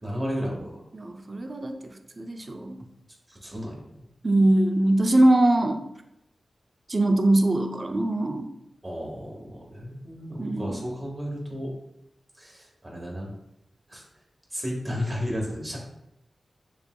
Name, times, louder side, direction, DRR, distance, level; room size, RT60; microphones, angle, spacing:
voice 1, 0.0-0.8 3.3-3.8 8.8-11.7 12.4-13.3 13.9-14.0 14.5-15.8, equal, 25° right, -2 dB, 1.6 m, -33 dB
voice 2, 0.9-2.8 4.2-5.8 6.9-8.5 10.4-10.8, right 1 dB, 45° right, 6 dB, 0.5 m, -22 dB
6.9 x 2.6 x 2.3 m, 0.84 s
cardioid pair, 45°, 0 cm